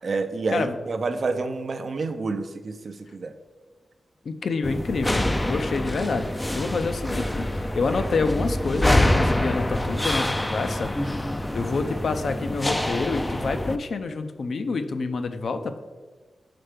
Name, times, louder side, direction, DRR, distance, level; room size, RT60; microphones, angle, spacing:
voice 1, 0.0-3.3, right 3 dB, 60° right, 8 dB, 0.6 m, -28 dB
voice 2, 4.2-11.2 11.5-15.8, left 4 dB, 65° left, 9 dB, 0.5 m, -28 dB
sound 1, 4.6-13.8, left 1 dB, 15° left, 0.4 m, -26 dB
5.9 x 4.4 x 5.1 m, 1.3 s
cardioid pair, 80°, 0 cm